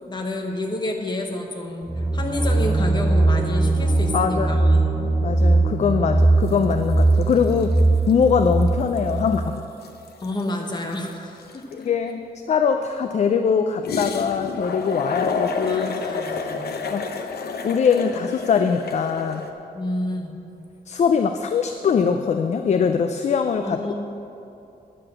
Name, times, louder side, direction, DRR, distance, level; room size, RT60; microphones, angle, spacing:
voice 1, 0.0-4.9 10.2-11.9 15.7-16.7 19.7-20.3 23.6-23.9, left 1 dB, 25° left, 2 dB, 1.0 m, -29 dB
sound 1, 1.8-9.5, right 2 dB, ahead, 1.2 m, -20 dB
voice 2, 4.1-7.8 8.1-9.6 11.7-12.2 12.5-15.9 16.9-17.1 17.6-19.4 20.9-23.8, left 6 dB, 45° left, 7 dB, 0.4 m, -22 dB
sound 2, 6.5-6.7 7.0-8.2 8.6-8.7 9.0-11.8 13.8-19.5, left 4 dB, 75° left, 0.8 m, -30 dB
9.7 x 6.8 x 7.3 m, 2.8 s
wide cardioid pair, 175°, 17 cm